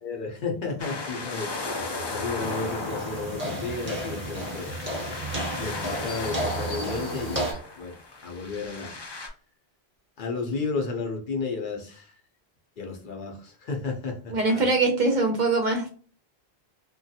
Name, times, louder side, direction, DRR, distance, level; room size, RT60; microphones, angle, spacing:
voice 1, 0.0-1.5 2.0-4.7 5.6-8.0 8.2-9.0 10.2-12.2 12.8-14.6, left 4 dB, 60° left, 2 dB, 0.7 m, -33 dB
sound 1, 0.8-9.3, left 3 dB, 45° left, 0.3 m, -36 dB
sound 2, 1.7-7.6, right 2 dB, 80° left, 0.9 m, -39 dB
sound 3, 2.4-7.5, equal, 15° right, 0.7 m, -33 dB
voice 2, 14.3-15.9, right 3 dB, 55° right, 4 dB, 0.6 m, -23 dB
3.0 x 2.2 x 2.7 m, 0.42 s
omnidirectional pair, 1.1 m